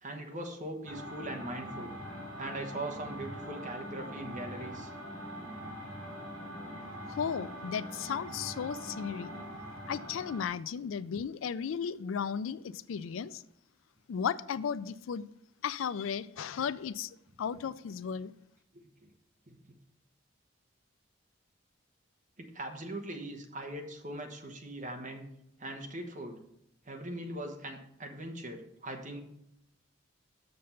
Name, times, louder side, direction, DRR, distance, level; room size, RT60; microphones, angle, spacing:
voice 1, 0.0-2.0 2.4-4.9 18.7-19.1 19.5-19.6 22.4-25.3 25.6-26.4 26.9-29.2, right 1 dB, 40° right, 4 dB, 1.1 m, -41 dB
sound 1, 0.8-10.5, equal, 80° right, 3.4 m, -43 dB
voice 2, 7.1-9.3 9.9-13.4 14.1-15.2 15.6-18.3, left 7 dB, 85° left, 17 dB, 0.4 m, -35 dB
6.7 x 6.6 x 5.6 m, 0.76 s
head